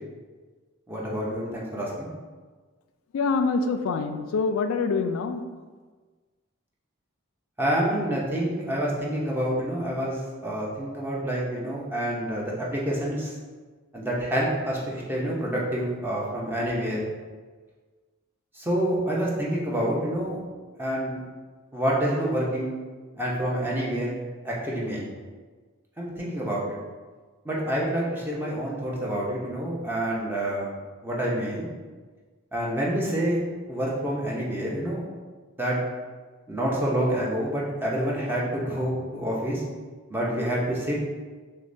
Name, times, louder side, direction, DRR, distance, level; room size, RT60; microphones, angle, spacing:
voice 1, 0.9-2.1 7.6-13.3 13.9-17.0 18.5-20.4 20.8-21.2 21.7-22.8 23.2-24.2 24.4-25.1 26.0-26.8 27.4-30.8 31.0-31.7 32.5-33.4 33.7-35.0 35.6-35.8 36.5-39.6 40.1-40.9, right 1 dB, 10° right, -5 dB, 0.6 m, -27 dB
voice 2, 3.1-5.4, left 4 dB, 85° left, 8 dB, 0.3 m, -25 dB
6.3 x 2.1 x 2.6 m, 1.4 s
head